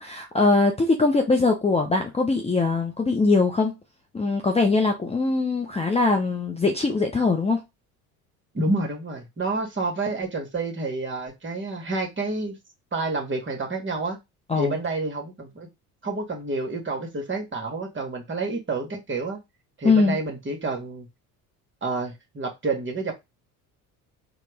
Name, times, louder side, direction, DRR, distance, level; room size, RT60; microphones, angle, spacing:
voice 1, 0.0-3.7 4.1-7.6 14.5-14.8 19.8-20.2, left 3 dB, 15° left, 0.7 m, -22 dB
voice 2, 8.5-12.6 12.9-14.2 14.5-15.7 16.0-19.4 19.8-21.1 21.8-23.1, right 3 dB, 25° right, 1.6 m, -29 dB
4.0 x 2.4 x 3.4 m
hypercardioid pair, 60°, 45 cm